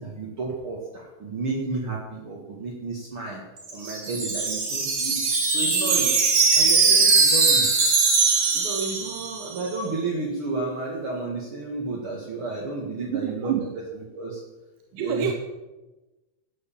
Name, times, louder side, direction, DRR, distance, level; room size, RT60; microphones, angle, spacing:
voice 1, 0.0-3.4 3.7-5.3 5.5-6.2 6.6-7.7 8.5-13.6 13.9-14.4 14.9-15.3, right 3 dB, 45° right, -3 dB, 2.7 m, -32 dB
Wind chime, 3.6-9.6, right 4 dB, 70° right, 4.0 m, -21 dB
voice 2, 13.1-13.6 15.0-15.3, right 11 dB, 90° right, 4 dB, 2.5 m, -27 dB
13.0 x 9.5 x 7.4 m, 1.1 s
omnidirectional pair, 3.5 m